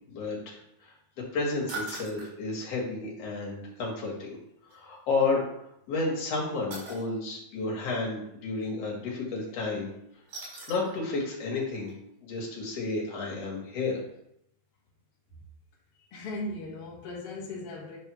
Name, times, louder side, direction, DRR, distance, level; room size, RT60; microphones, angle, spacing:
voice 1, 0.1-0.9 1.3-4.4 4.7-5.4 5.9-9.9 10.7-11.9 12.2-14.0, left 3 dB, 55° left, -2 dB, 1.9 m, -31 dB
sound 1, 1.7-2.3 4.7-4.8 6.7-7.0 10.3-11.0 11.4-11.5 11.9-12.0, right 2 dB, 65° right, 6.1 m, -39 dB
voice 2, 16.1-18.0, left 2 dB, 85° left, -4 dB, 1.2 m, -37 dB
10.0 x 3.8 x 6.2 m, 0.79 s
omnidirectional pair, 5.4 m